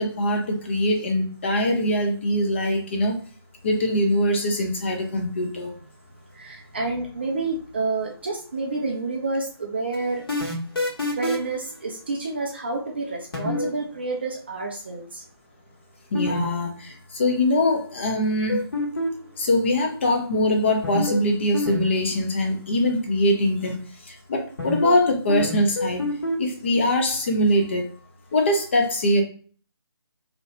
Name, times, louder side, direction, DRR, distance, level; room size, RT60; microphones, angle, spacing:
voice 1, 0.0-3.2 3.6-5.7 16.1-18.6 19.4-23.8 24.0-26.0 26.4-27.9 28.3-29.2, left 1 dB, 25° left, 0.6 m, -22 dB
voice 2, 6.3-10.2 11.1-15.2, right 3 dB, 25° right, 0.4 m, -29 dB
sound 1, 9.9-11.6 13.3-13.7 16.1-16.4 16.6-16.7 18.5-19.3 20.8-21.2 21.5-21.8 22.0-22.1 24.6-25.0 25.3-26.4, left 2 dB, 60° left, 1.4 m, -26 dB
2.8 x 2.6 x 3.1 m
figure-of-eight pair, 150°, 14 cm